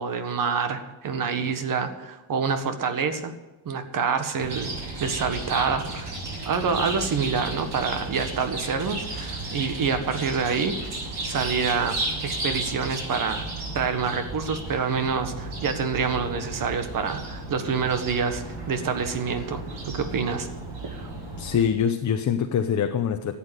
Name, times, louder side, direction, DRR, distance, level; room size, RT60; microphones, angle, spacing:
voice 1, 0.0-3.3 3.6-4.7 5.0-6.1 6.4-10.9 11.2-12.0 12.2-13.4 13.7-20.5 20.8-21.1, right 5 dB, 40° right, 9 dB, 1.6 m, -27 dB
Chirp tweet, 4.4-21.6, right 2 dB, 60° right, 6.8 m, -34 dB
voice 2, 21.4-23.4, left 8 dB, 35° left, 5 dB, 0.9 m, -24 dB
14.0 x 8.8 x 8.2 m, 1.1 s
cardioid pair, 165°, 48 cm